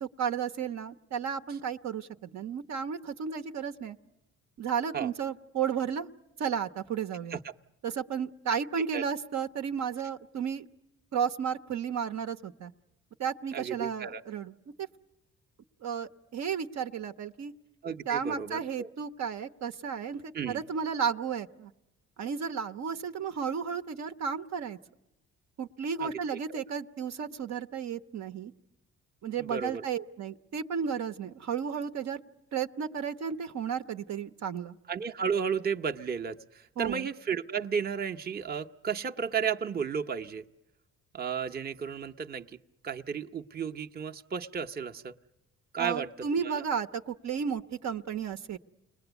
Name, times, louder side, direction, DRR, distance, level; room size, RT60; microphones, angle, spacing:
voice 1, 0.0-4.0 4.6-6.1 6.4-7.4 7.8-10.6 11.1-12.7 13.2-14.5 14.8-14.9 15.8-17.5 18.1-21.7 22.2-24.8 25.6-28.5 29.2-32.2 32.5-34.8 36.8-37.1 45.8-48.6, right 7 dB, 65° right, 9 dB, 1.0 m, -33 dB
voice 2, 13.5-14.2 17.8-18.9 20.3-20.6 26.0-26.1 26.5-26.6 29.4-29.8 34.9-40.4 41.1-42.6 42.8-45.1 45.7-46.6, right 6 dB, 30° right, 4 dB, 0.9 m, -33 dB
29.5 x 20.5 x 8.1 m, 0.96 s
cardioid pair, 90°, 30 cm